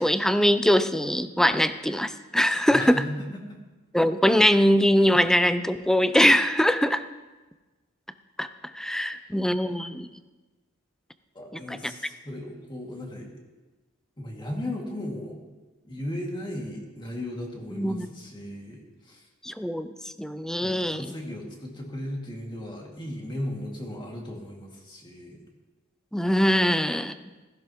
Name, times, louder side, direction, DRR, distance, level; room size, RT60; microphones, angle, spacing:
voice 1, 0.0-3.0 3.9-7.0 8.4-8.5 8.7-10.1 11.7-11.9 17.8-18.1 19.4-19.9 20.2-21.1 26.1-27.1, equal, ahead, 11 dB, 0.4 m, -22 dB
voice 2, 2.6-3.6 9.1-9.3 11.3-13.3 14.2-15.4 15.8-18.8 19.0-19.2 20.6-25.4, left 1 dB, 25° left, -1 dB, 2.2 m, -36 dB
15.5 x 15.0 x 3.0 m, 1.2 s
head